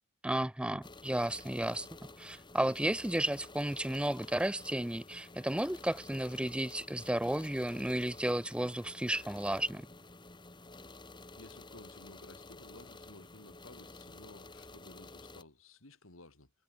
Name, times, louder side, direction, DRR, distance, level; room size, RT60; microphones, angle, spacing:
voice 1, 0.2-1.9 2.2-9.9, right 1 dB, 5° right, 0.5 m, -33 dB
sound 1, 0.8-15.4, left 2 dB, 20° left, 2.5 m, -52 dB
voice 2, 11.4-16.5, left 2 dB, 80° left, 3.6 m, -55 dB
head